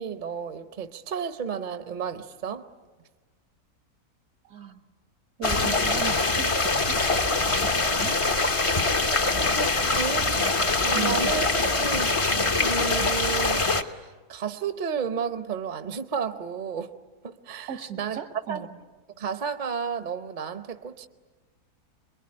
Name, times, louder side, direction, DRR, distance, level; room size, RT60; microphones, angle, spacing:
voice 1, 0.0-2.7 9.2-10.3 10.8-11.5 11.7-12.2 12.6-16.9 17.2-18.2 18.5-18.7 19.2-21.1, right 6 dB, 35° right, 0.9 m, -32 dB
voice 2, 4.5-4.9 5.4-7.0 7.5-8.2 10.9-11.3 17.7-18.7, right 8 dB, 70° right, 1.9 m, -37 dB
sound 1, 5.4-13.8, left 3 dB, 25° left, 0.8 m, -24 dB
27.0 x 22.0 x 9.7 m
omnidirectional pair, 1.6 m